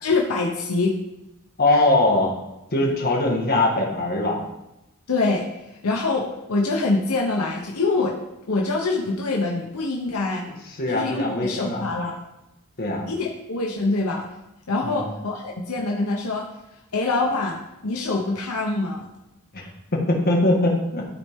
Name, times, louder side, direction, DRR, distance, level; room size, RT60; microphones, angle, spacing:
voice 1, 0.0-1.0 5.1-5.5 5.8-8.1 8.5-10.4 10.9-12.2 13.1-14.2 14.7-16.5 16.9-19.0, left 3 dB, 75° left, -1 dB, 0.9 m, -24 dB
voice 2, 1.6-2.3 2.7-4.4 10.8-11.9 12.8-13.0 14.8-15.1 19.5-21.0, left 2 dB, 45° left, -2 dB, 1.7 m, -21 dB
12.5 x 4.3 x 3.6 m, 0.91 s
head